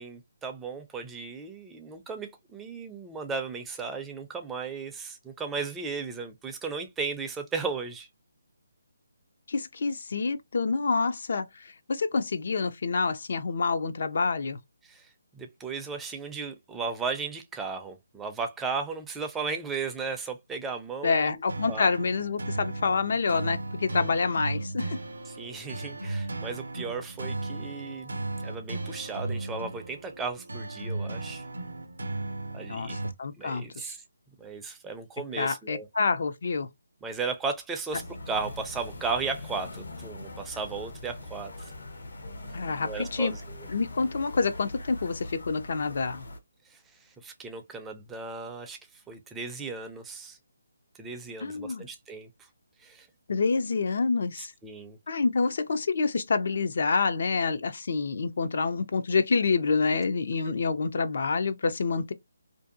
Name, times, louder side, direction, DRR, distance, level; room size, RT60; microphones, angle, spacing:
voice 1, 0.0-8.1 14.8-21.4 21.7-21.9 25.3-31.4 32.5-33.0 33.4-34.0 34.4-35.9 37.0-41.5 42.8-43.7 46.7-46.8 47.2-48.8 49.1-50.4 51.0-52.3 52.8-53.1 54.6-55.0, right 4 dB, 10° right, 0.4 m, -35 dB
voice 2, 9.5-14.6 21.0-25.0 32.7-33.9 35.4-36.7 42.5-43.3 43.7-46.2 51.4-51.9 53.3-54.5 55.1-62.1, left 4 dB, 60° left, 0.4 m, -27 dB
sound 1, 21.5-33.1, right 2 dB, 80° right, 0.5 m, -36 dB
sound 2, 37.9-46.4, left 1 dB, 80° left, 0.8 m, -42 dB
2.6 x 2.2 x 2.5 m
figure-of-eight pair, 155°, 0 cm